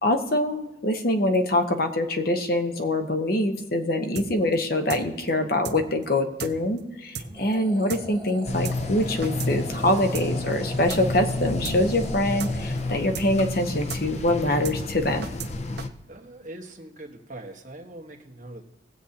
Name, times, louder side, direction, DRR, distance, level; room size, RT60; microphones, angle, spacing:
voice 1, 0.0-15.3, left 1 dB, 50° left, 6 dB, 1.0 m, -24 dB
sound 1, 4.2-4.3 4.5-4.6 4.9-5.0 5.3-5.4 5.6-5.8 6.0-6.1 6.4-6.5 6.8-6.9 7.1-7.3 7.5-7.6 7.9-8.0 8.3-8.4 8.6-8.8 9.0-9.5 9.8-9.9 10.1-10.3 10.5-10.6 10.9-11.0 11.3-11.4 11.6-11.8 12.0-12.1 12.4-12.5 12.8-12.9 13.1-13.3 13.5-13.6 13.9-14.0 14.3-14.4 14.6-14.8 15.0-15.5 15.8-15.9, right 6 dB, 60° right, 0.8 m, -34 dB
voice 2, 7.2-7.6 16.1-18.6, right 1 dB, 40° right, 2 dB, 1.4 m, -42 dB
sound 2, 7.3-13.5, right 1 dB, 10° left, 3.2 m, -42 dB
sound 3, 8.4-15.9, left 2 dB, 35° left, 0.6 m, -30 dB
20.5 x 7.9 x 2.9 m, 1.1 s
head